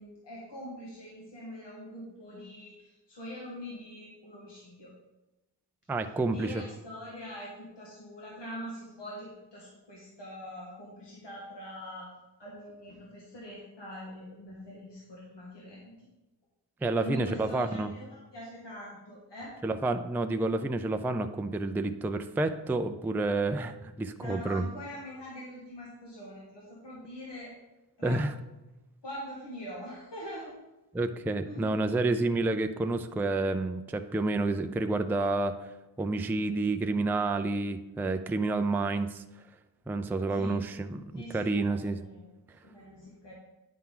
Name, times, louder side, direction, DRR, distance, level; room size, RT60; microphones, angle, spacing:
voice 1, 0.0-4.9 6.0-6.1 6.3-12.1 12.4-16.1 17.0-19.5 24.2-27.5 28.0-28.2 29.0-30.5 31.4-31.8 40.3-40.6 41.2-43.3, equal, 75° left, -4 dB, 1.6 m, -43 dB
voice 2, 5.9-6.6 16.8-17.9 19.6-24.7 28.0-28.3 30.9-35.7 36.0-39.2 39.9-42.0, right 2 dB, 5° right, 8 dB, 0.3 m, -29 dB
9.3 x 5.7 x 3.8 m, 1.0 s
wide cardioid pair, 85°, 43 cm